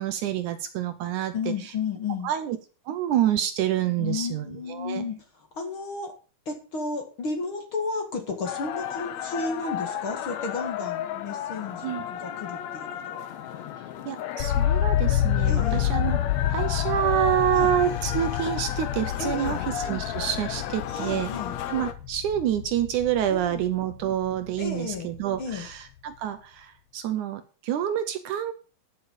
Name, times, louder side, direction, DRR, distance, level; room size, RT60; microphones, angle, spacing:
voice 1, 0.0-1.5 2.2-2.6 2.9-5.1 11.8-12.0 14.1-16.2 16.5-21.3 21.7-28.5, right 11 dB, 70° right, 10 dB, 2.1 m, -27 dB
voice 2, 1.3-2.3 4.0-6.1 6.5-13.3 15.5-15.9 17.5-17.8 19.2-19.6 20.8-21.5 23.3-23.6 24.6-25.1 25.4-25.7, left 4 dB, 45° left, 4 dB, 2.3 m, -33 dB
sound 1, 8.4-21.9, left 10 dB, 70° left, 1.8 m, -34 dB
sound 2, 14.4-24.4 24.7-25.4, left 12 dB, 90° left, 1.3 m, -28 dB
10.0 x 6.9 x 7.2 m, 0.36 s
omnidirectional pair, 4.0 m